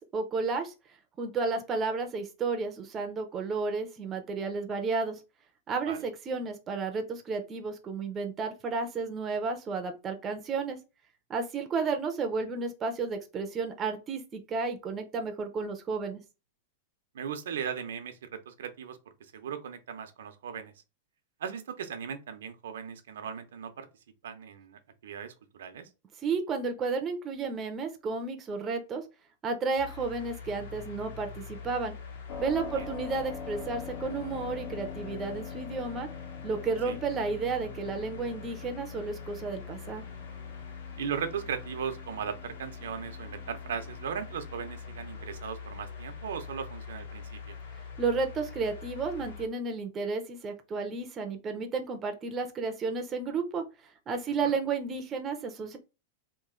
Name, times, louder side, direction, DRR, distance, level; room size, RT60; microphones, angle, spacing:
voice 1, 0.1-0.7 1.2-5.2 5.7-10.8 11.3-16.2 26.2-29.0 29.4-31.9 32.4-36.1 36.4-40.0 48.0-53.6 54.1-55.8, right 4 dB, 20° right, 0.5 m, -32 dB
voice 2, 17.1-19.0 19.3-20.7 21.4-23.9 24.2-25.9 32.7-32.9 36.9-37.0 41.0-47.6 54.4-54.5, right 7 dB, 90° right, 0.7 m, -37 dB
sound 1, 29.8-49.5, left 5 dB, 65° left, 1.2 m, -44 dB
Keyboard (musical), 32.3-44.8, left 6 dB, 35° left, 0.7 m, -45 dB
3.0 x 2.5 x 3.6 m
supercardioid pair, 165°, 0 cm